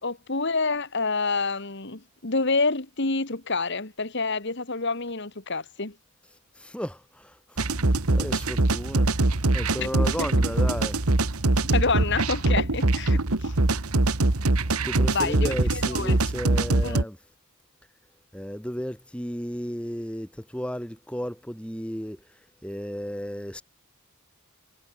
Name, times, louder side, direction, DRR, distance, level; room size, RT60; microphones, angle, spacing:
voice 1, 0.0-5.9 9.8-10.3 11.6-13.5 15.1-16.2 16.8-17.0, left 3 dB, 55° left, 2.0 m, -28 dB
voice 2, 6.5-9.1 9.5-11.2 14.4-17.2 18.3-23.6, equal, 5° left, 4.9 m, -34 dB
sound 1, 7.6-17.0, right 2 dB, 85° right, 1.8 m, -23 dB
head